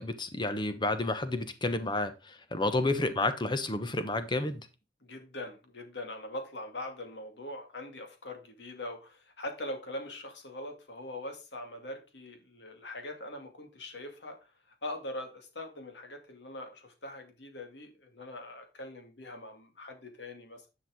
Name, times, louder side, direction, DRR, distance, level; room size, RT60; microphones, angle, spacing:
voice 1, 0.0-4.7, left 2 dB, 25° left, 10 dB, 1.0 m, -30 dB
voice 2, 5.0-20.7, left 1 dB, 80° left, 5 dB, 2.2 m, -42 dB
10.5 x 6.1 x 3.7 m, 0.28 s
head